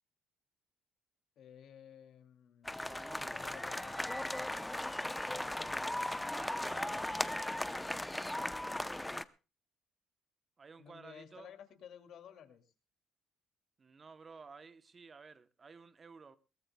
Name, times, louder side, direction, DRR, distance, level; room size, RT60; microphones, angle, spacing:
voice 1, 1.4-2.7 3.2-4.4 5.2-6.0 10.8-12.7, left 8 dB, 60° left, 2.5 m, -55 dB
sound 1, 2.7-9.2, left 1 dB, 5° left, 0.7 m, -37 dB
voice 2, 2.8-3.4 6.2-8.1 10.6-11.5 13.8-16.4, right 4 dB, 25° right, 0.9 m, -53 dB
21.5 x 18.0 x 2.3 m
cardioid pair, 130°, 0 cm